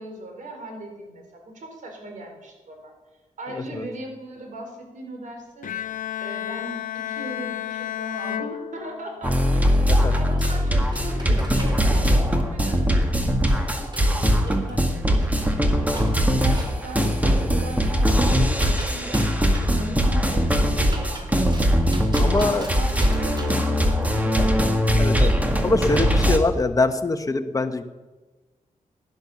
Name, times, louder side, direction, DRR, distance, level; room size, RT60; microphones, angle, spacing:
voice 1, 0.0-2.9 3.4-5.7 6.2-13.6 14.2-17.1 17.5-21.7 22.0-24.8, right 2 dB, 70° right, 3 dB, 3.8 m, -38 dB
voice 2, 3.5-3.8 9.9-10.1 22.2-22.7 25.0-25.3 25.6-27.8, left 3 dB, 25° left, 7 dB, 1.0 m, -23 dB
Bowed string instrument, 5.6-9.4, left 12 dB, 80° left, 0.8 m, -32 dB
sound 1, 9.2-26.4, equal, 10° right, 1.7 m, -21 dB
sound 2, 10.0-23.6, right 1 dB, 35° right, 3.2 m, -41 dB
15.5 x 10.5 x 7.0 m, 1.2 s
wide cardioid pair, 115°, 14 cm